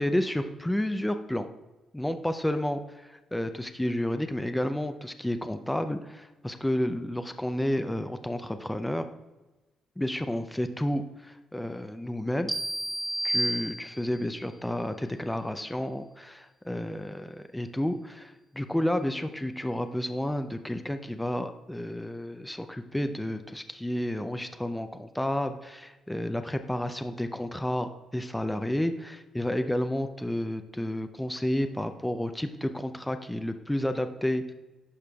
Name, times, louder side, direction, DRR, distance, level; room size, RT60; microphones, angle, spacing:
voice 1, 0.0-1.5 1.9-9.0 10.0-12.5 13.2-34.5, left 1 dB, 5° left, 8 dB, 0.4 m, -31 dB
sound 1, 12.5-14.3, right 1 dB, 10° right, 0.9 m, -31 dB
11.0 x 4.9 x 2.3 m, 1.1 s
cardioid pair, 90°, 0 cm